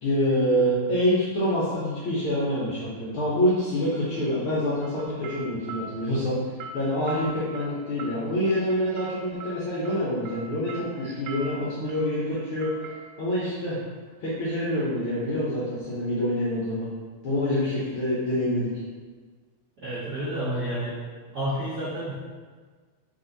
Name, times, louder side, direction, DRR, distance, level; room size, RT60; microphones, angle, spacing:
voice 1, 0.0-6.4 6.7-12.7 13.2-13.8 14.2-16.9 17.2-18.7, equal, 70° left, -8 dB, 1.3 m, -26 dB
sound 1, 4.8-14.7, right 3 dB, 85° right, 2.0 m, -42 dB
voice 2, 19.8-21.0 21.3-22.1, right 1 dB, 70° right, -10 dB, 0.9 m, -30 dB
4.6 x 2.7 x 3.8 m, 1.5 s
omnidirectional pair, 3.3 m